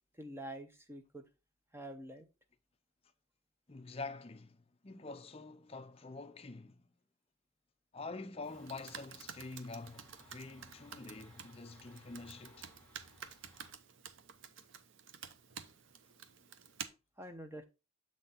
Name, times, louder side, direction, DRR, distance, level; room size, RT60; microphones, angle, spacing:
voice 1, 0.2-1.2 1.7-2.3 17.2-17.6, right 1 dB, 10° right, 0.8 m, -46 dB
voice 2, 3.7-6.9 7.9-12.7, left 3 dB, 25° left, 0.5 m, -47 dB
Computer keyboard, 8.4-16.9, right 7 dB, 60° right, 0.6 m, -51 dB
sound 1, 8.5-13.7, equal, 5° left, 1.2 m, -62 dB
7.6 x 4.0 x 4.1 m
head